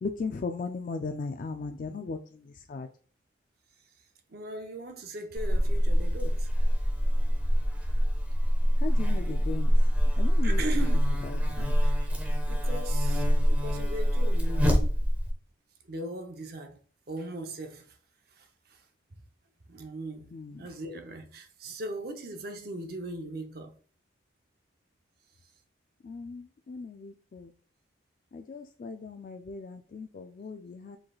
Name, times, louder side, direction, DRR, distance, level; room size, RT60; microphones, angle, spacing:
voice 1, 0.0-2.9 8.8-9.7 10.2-10.9 11.2-11.7 20.3-20.7 26.0-27.5 28.3-31.0, left 4 dB, 45° left, 0.3 m, -37 dB
voice 2, 4.3-6.5 10.4-12.0 12.5-14.9 15.9-16.8 17.1-18.0 18.4-18.8 19.7-20.3 20.6-23.7, right 2 dB, 55° right, 0.7 m, -39 dB
Buzz, 5.3-15.3, equal, 10° right, 0.7 m, -25 dB
4.6 x 3.8 x 2.3 m
head